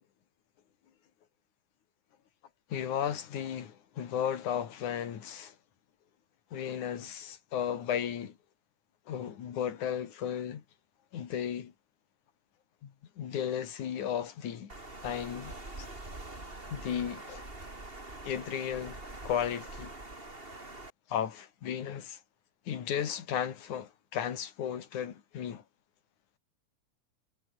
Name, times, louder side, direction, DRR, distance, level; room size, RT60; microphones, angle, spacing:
voice 1, 2.7-5.6 6.5-8.4 9.1-10.6 11.1-11.7 12.8-14.7 15.0-15.9 16.7-17.5 18.2-19.0 19.2-19.9 21.1-22.2 22.7-25.6, left 9 dB, 75° left, 3.7 m, -35 dB
Water, 14.7-20.9, right 2 dB, 15° right, 4.1 m, -44 dB
omnidirectional pair, 3.5 m